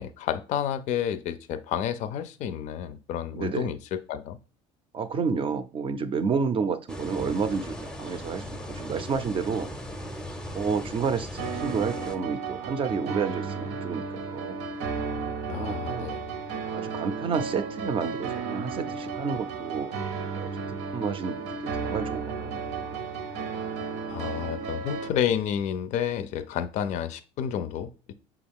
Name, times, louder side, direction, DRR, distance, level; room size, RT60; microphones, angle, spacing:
voice 1, 0.0-4.4 15.5-16.2 24.1-28.1, left 9 dB, 55° left, 0.4 m, -30 dB
voice 2, 3.3-3.7 4.9-9.7 10.5-14.6 15.5-16.1 16.7-19.9 20.4-22.6 22.9-23.0, right 5 dB, 35° right, 0.5 m, -30 dB
sound 1, 6.9-12.2, equal, 5° left, 0.6 m, -38 dB
sound 2, 11.4-25.1, right 5 dB, 80° right, 0.7 m, -33 dB
5.7 x 2.3 x 3.5 m
supercardioid pair, 95°, 15 cm